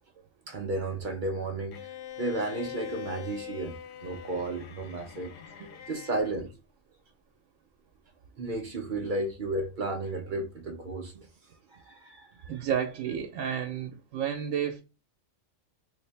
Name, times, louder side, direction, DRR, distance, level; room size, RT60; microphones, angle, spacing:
voice 1, 0.5-1.9 2.2-3.8 4.0-5.3 5.6-6.5 8.4-11.3 11.7-12.6, right 2 dB, 55° right, 0.5 m, -33 dB
Bowed string instrument, 1.7-6.4, left 10 dB, 75° left, 1.0 m, -43 dB
voice 2, 12.5-14.8, right 8 dB, 80° right, 1.0 m, -31 dB
3.4 x 2.6 x 3.2 m
omnidirectional pair, 1.4 m